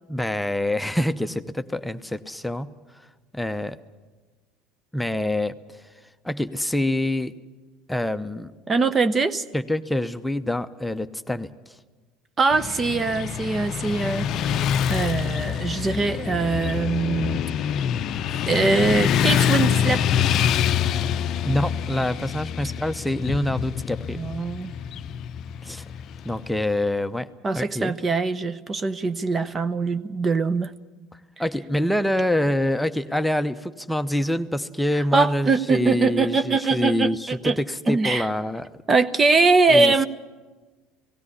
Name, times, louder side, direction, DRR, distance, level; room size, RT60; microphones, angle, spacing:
voice 1, 0.1-2.7 3.3-3.8 4.9-5.9 6.2-7.3 7.9-8.5 9.5-11.5 18.3-18.5 21.4-24.2 25.6-25.8 26.2-27.3 27.5-27.9 31.4-38.7 39.7-40.1, left 1 dB, 5° left, 10 dB, 0.8 m, -26 dB
voice 2, 8.7-9.4 12.4-14.4 14.9-17.4 18.5-20.0 24.2-24.7 27.4-30.7 35.1-37.6 37.9-38.3 38.9-40.1, right 3 dB, 25° right, 13 dB, 0.8 m, -22 dB
Motorcycle / Traffic noise roadway noise, 12.5-26.6, left 9 dB, 50° left, 0.6 m, -25 dB
18.0 x 16.5 x 9.7 m, 1.3 s
hypercardioid pair, 70°, 0 cm